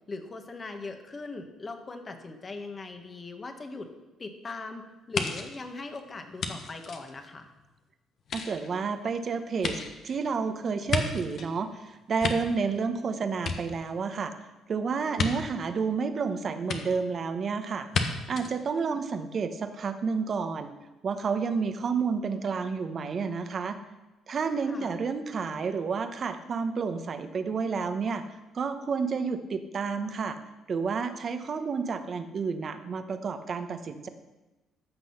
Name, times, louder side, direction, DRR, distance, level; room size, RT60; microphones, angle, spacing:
voice 1, 0.1-3.9 4.2-7.5 24.7-25.0, left 3 dB, 35° left, 6 dB, 1.8 m, -40 dB
sound 1, 5.1-7.7 8.2-11.5 11.9-13.0 13.3-14.2 15.1-15.3 16.7-16.8 17.9-18.0 18.4-18.5, left 5 dB, 60° left, 1.4 m, -33 dB
voice 2, 8.3-14.3 14.7-17.9 18.3-20.7 21.0-23.8 24.3-28.2 28.5-30.4 30.7-34.1, right 5 dB, 50° right, 9 dB, 1.2 m, -30 dB
14.5 x 6.2 x 5.8 m, 1.1 s
supercardioid pair, 60°, 0 cm